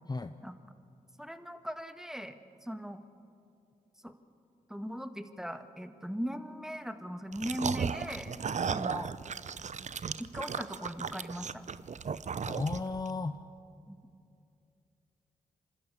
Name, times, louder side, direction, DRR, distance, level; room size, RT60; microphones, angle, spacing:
voice 1, 1.2-3.0 4.0-4.1 4.7-8.3 8.7-9.1 10.2-11.6 13.9-14.1, equal, 5° right, 9 dB, 1.6 m, -39 dB
sound 1, 7.3-13.1, right 6 dB, 45° right, 0.7 m, -36 dB
voice 2, 12.4-13.4, left 3 dB, 25° left, 11 dB, 0.7 m, -34 dB
25.0 x 13.0 x 8.6 m, 2.6 s
supercardioid pair, 40°, 17 cm